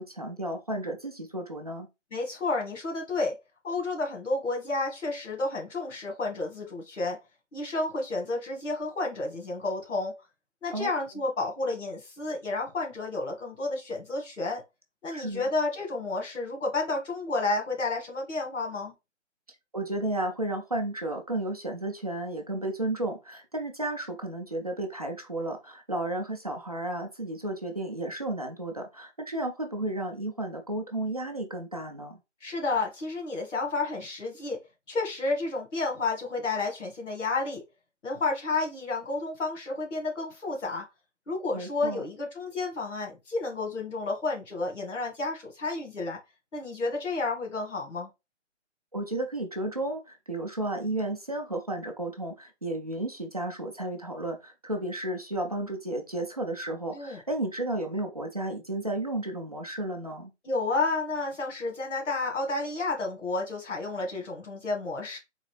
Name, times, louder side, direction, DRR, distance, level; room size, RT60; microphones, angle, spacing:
voice 1, 0.0-1.9 10.7-10.9 15.1-15.4 19.7-32.2 41.5-42.0 48.9-60.3, right 1 dB, 35° right, 0.5 m, -33 dB
voice 2, 2.1-3.4 3.6-7.2 7.5-10.1 10.6-14.6 15.0-18.9 32.4-34.6 34.9-37.6 38.0-40.8 41.3-46.2 46.5-48.1 56.9-57.2 60.4-65.2, left 3 dB, 80° left, 1.8 m, -31 dB
3.9 x 2.6 x 3.2 m
hypercardioid pair, 170°, 36 cm